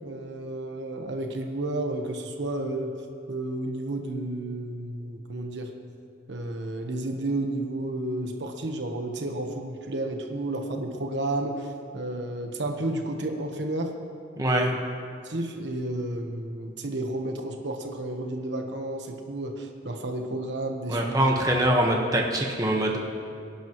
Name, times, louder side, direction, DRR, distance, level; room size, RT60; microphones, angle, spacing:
voice 1, 0.0-2.9 3.3-5.7 6.3-13.9 14.4-14.8 15.2-21.3, right 1 dB, 75° right, 3 dB, 1.2 m, -32 dB
voice 2, 14.4-14.7 20.9-23.0, right 1 dB, 20° right, 0 dB, 1.3 m, -23 dB
24.5 x 11.0 x 3.1 m, 2.4 s
head